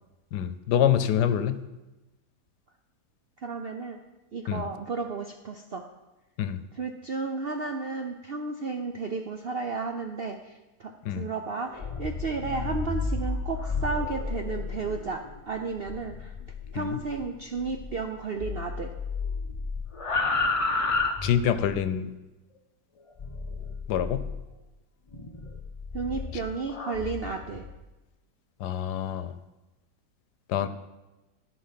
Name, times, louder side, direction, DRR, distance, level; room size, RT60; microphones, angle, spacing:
voice 1, 0.3-1.6 4.5-4.6 6.4-6.6 11.0-11.3 16.7-17.0 21.2-22.1 23.9-24.2 28.6-29.4 30.5-30.7, left 9 dB, 85° left, 12 dB, 1.3 m, -26 dB
voice 2, 3.4-4.0 4.3-5.8 6.7-16.3 16.7-18.9 25.9-27.6, right 4 dB, 65° right, 5 dB, 0.6 m, -33 dB
sound 1, 11.7-18.1 18.4-21.8 23.2-24.4 25.1-27.7, left 3 dB, 30° left, 0.6 m, -32 dB
13.5 x 5.6 x 5.7 m, 1.1 s
omnidirectional pair, 1.7 m